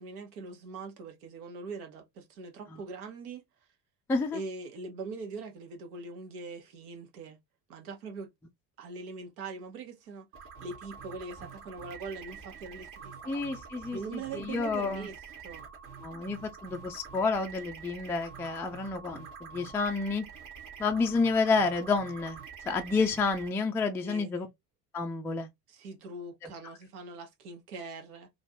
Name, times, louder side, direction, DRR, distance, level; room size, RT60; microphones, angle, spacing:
voice 1, 0.0-3.4 4.3-7.4 7.7-8.3 8.8-10.3 10.6-13.4 13.9-15.2 15.4-15.6 24.0-24.5 25.7-28.3, right 4 dB, 70° right, 1.2 m, -42 dB
voice 2, 4.1-4.4 13.3-15.1 16.0-20.3 20.8-22.4 22.7-24.5 24.9-25.5 26.4-26.5, left 4 dB, 5° left, 0.3 m, -30 dB
sound 1, 10.3-23.5, right 6 dB, 40° right, 1.3 m, -47 dB
3.1 x 2.6 x 2.8 m
figure-of-eight pair, 65°, 48 cm